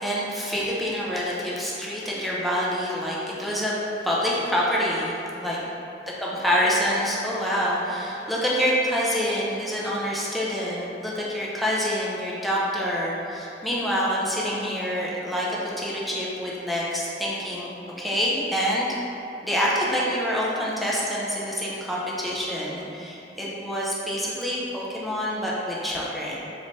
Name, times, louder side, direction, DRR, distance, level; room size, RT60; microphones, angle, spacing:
voice 1, 0.0-3.7 4.0-5.6 6.2-18.9 19.4-26.4, equal, ahead, -6 dB, 0.6 m, -26 dB
3.8 x 3.1 x 4.1 m, 2.8 s
head